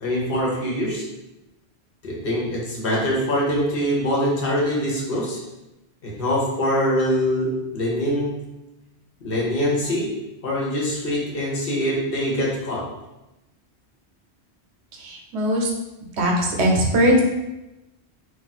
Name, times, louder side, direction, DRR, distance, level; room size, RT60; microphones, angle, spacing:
voice 1, 0.0-1.0 2.0-5.4 6.0-8.3 9.2-10.1 10.4-12.8, equal, 60° left, -4 dB, 0.9 m, -23 dB
voice 2, 15.0-15.7 16.2-17.2, equal, 75° right, 0 dB, 0.9 m, -20 dB
2.4 x 2.3 x 4.0 m, 0.97 s
omnidirectional pair, 1.1 m